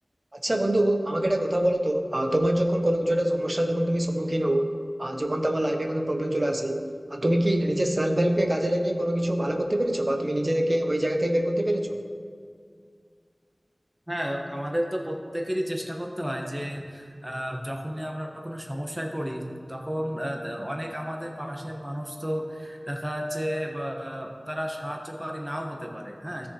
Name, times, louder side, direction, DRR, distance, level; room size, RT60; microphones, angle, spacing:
voice 1, 0.3-12.0, right 1 dB, 40° right, 4 dB, 0.9 m, -25 dB
voice 2, 14.1-26.5, equal, 15° right, 0 dB, 1.4 m, -32 dB
16.0 x 7.0 x 3.1 m, 2.1 s
wide cardioid pair, 55°, 0 cm